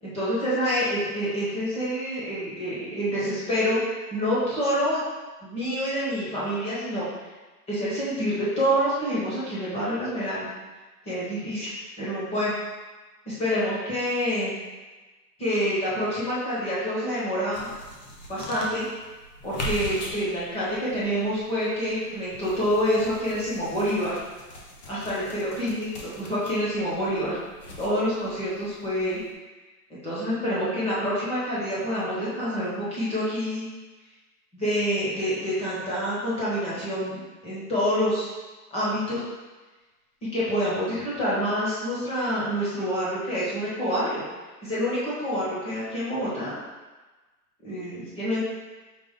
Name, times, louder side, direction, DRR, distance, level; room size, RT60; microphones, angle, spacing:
voice 1, 0.0-3.8 4.1-5.0 5.4-7.0 7.7-10.5 11.1-12.6 13.3-14.6 15.4-17.7 18.3-18.8 19.4-24.2 24.9-27.4 27.8-29.2 29.9-33.7 34.5-38.3 38.7-39.2 40.3-44.2 44.6-46.6 47.6-48.4, equal, 15° left, -9 dB, 0.9 m, -27 dB
sound 1, 17.5-29.3, equal, 30° left, 0.4 m, -41 dB
5.1 x 2.4 x 3.6 m, 1.2 s
hypercardioid pair, 155°, 47 cm